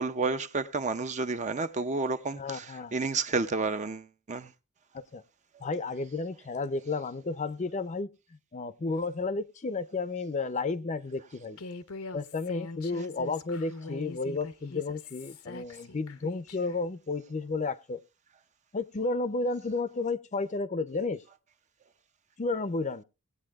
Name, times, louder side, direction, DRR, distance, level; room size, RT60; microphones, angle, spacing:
voice 1, 0.0-4.5, right 4 dB, 35° right, 0.6 m, -31 dB
voice 2, 2.4-2.9 4.9-5.2 5.6-8.1 8.5-11.6 12.1-18.0 18.7-21.2 22.4-23.0, left 3 dB, 35° left, 0.5 m, -32 dB
Human voice, 11.6-16.8, left 3 dB, 80° left, 0.7 m, -42 dB
19.0 x 8.4 x 2.4 m
head